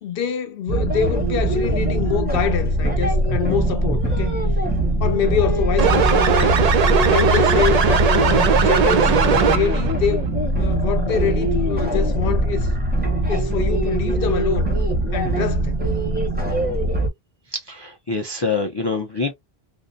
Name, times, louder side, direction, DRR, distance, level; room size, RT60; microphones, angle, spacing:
voice 1, 0.0-4.4 5.0-6.5 7.0-10.3 10.6-12.7 13.3-14.7 15.1-15.8, left 8 dB, 65° left, 0.7 m, -25 dB
sound 1, 0.7-17.1, right 1 dB, 10° right, 0.6 m, -21 dB
sound 2, 5.8-9.9, right 7 dB, 55° right, 0.4 m, -18 dB
voice 2, 17.5-19.3, left 3 dB, 40° left, 0.3 m, -25 dB
2.6 x 2.0 x 2.4 m
omnidirectional pair, 1.1 m